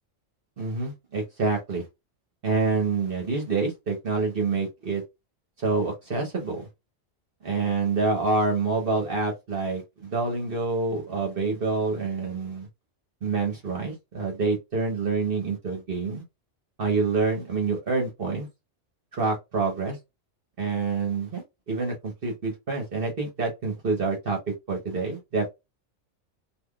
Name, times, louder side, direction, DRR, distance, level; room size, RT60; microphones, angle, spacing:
voice 1, 0.6-1.8 2.4-5.0 5.6-6.7 7.4-12.7 13.2-16.2 16.8-18.5 19.1-20.0 20.6-24.4 24.7-25.6, right 4 dB, 50° right, 1.2 m, -27 dB
3.5 x 2.7 x 2.3 m
omnidirectional pair, 1.3 m